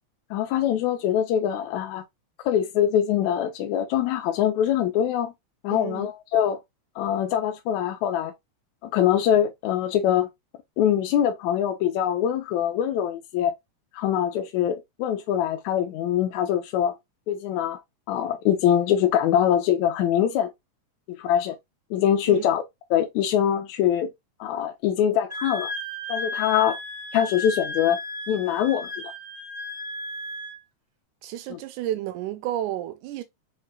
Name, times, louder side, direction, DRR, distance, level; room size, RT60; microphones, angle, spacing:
voice 1, 0.3-2.0 2.4-5.3 5.6-6.6 7.0-8.3 8.8-10.3 10.8-13.5 13.9-17.0 17.3-17.8 18.1-20.5 21.1-21.6 21.9-22.6 22.9-24.1 24.4-25.7 26.1-26.8 27.1-28.0 28.3-29.1 31.5-31.6, left 10 dB, 75° left, 1.8 m, -23 dB
voice 2, 5.7-6.1 22.3-22.5 31.2-33.2, right 12 dB, 80° right, 2.0 m, -31 dB
Wind instrument woodwind instrument, 25.3-30.6, left 2 dB, 50° right, 0.5 m, -34 dB
6.5 x 2.5 x 2.3 m
omnidirectional pair, 3.5 m